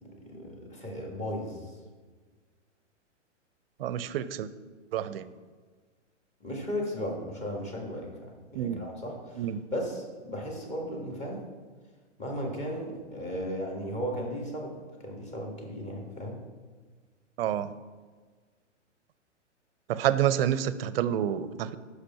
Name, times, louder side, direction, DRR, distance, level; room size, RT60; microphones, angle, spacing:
voice 1, 0.0-1.7 6.4-9.5 9.7-11.4 12.2-14.7 15.0-16.3, equal, 20° left, 0 dB, 1.5 m, -35 dB
voice 2, 3.8-4.5 4.9-5.3 8.5-8.8 9.4-9.6 17.4-17.7 19.9-21.8, right 10 dB, 50° right, 15 dB, 0.5 m, -28 dB
6.2 x 5.2 x 5.6 m, 1.4 s
hypercardioid pair, 120°, 37 cm